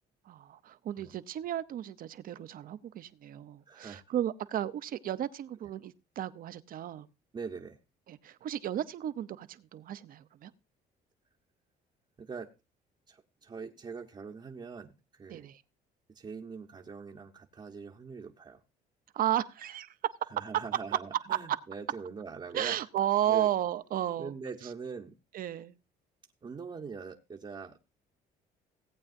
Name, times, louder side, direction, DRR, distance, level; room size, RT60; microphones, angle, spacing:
voice 1, 0.3-7.1 8.1-10.5 15.3-15.6 19.1-20.1 22.5-24.3 25.3-25.7, right 11 dB, 55° right, 13 dB, 0.7 m, -33 dB
voice 2, 3.7-4.0 7.3-7.8 12.2-12.5 13.1-15.5 16.1-18.6 20.3-22.8 23.3-23.5 24.2-25.2 26.4-27.8, right 5 dB, 30° right, -1 dB, 1.0 m, -42 dB
17.5 x 8.6 x 2.6 m, 0.26 s
cardioid pair, 110°, 17 cm